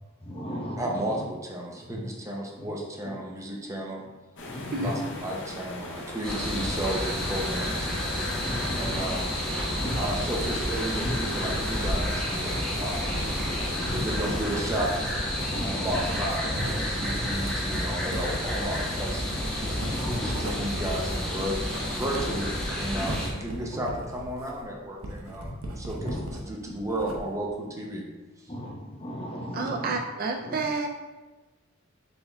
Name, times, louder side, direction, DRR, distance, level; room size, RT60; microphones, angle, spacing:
voice 1, 0.2-1.2 4.5-5.1 8.4-9.1 9.7-10.0 11.0-11.1 13.7-14.0 15.4-16.0 17.1-17.5 19.9-20.5 22.9-23.1 23.7-23.8 25.4-25.5 26.0-26.2 28.5-29.9 30.4-30.6, left 1 dB, 25° left, -2 dB, 0.9 m, -35 dB
voice 2, 0.8-4.0 4.8-7.9 8.6-9.3 9.8-13.2 13.9-14.9 15.6-19.4 20.0-25.5 25.8-28.0 28.4-28.5 29.8-29.9, right 1 dB, 15° right, -2 dB, 0.7 m, -33 dB
sound 1, 4.4-14.6, left 2 dB, 60° left, 0.7 m, -38 dB
sound 2, 6.2-23.3, equal, 5° left, 1.1 m, -30 dB
Writing, 9.9-26.4 26.8-27.5, equal, 80° right, 0.7 m, -38 dB
voice 3, 29.5-30.9, right 3 dB, 45° right, 3 dB, 0.4 m, -29 dB
4.3 x 3.5 x 3.4 m, 1.2 s
head